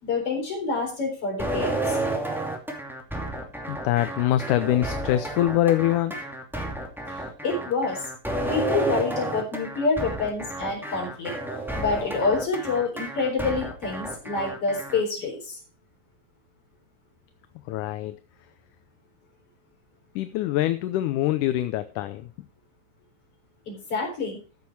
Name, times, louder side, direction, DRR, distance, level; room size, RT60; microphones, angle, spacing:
voice 1, 0.0-2.0 7.1-8.0 8.5-11.3 11.8-15.6 23.7-24.4, left 4 dB, 45° left, 1 dB, 4.9 m, -27 dB
sound 1, 1.4-15.0, right 2 dB, ahead, 1.9 m, -31 dB
voice 2, 3.7-6.2 17.7-18.2 20.2-22.3, left 13 dB, 80° left, 11 dB, 2.1 m, -24 dB
14.0 x 7.3 x 4.6 m, 0.35 s
omnidirectional pair, 3.8 m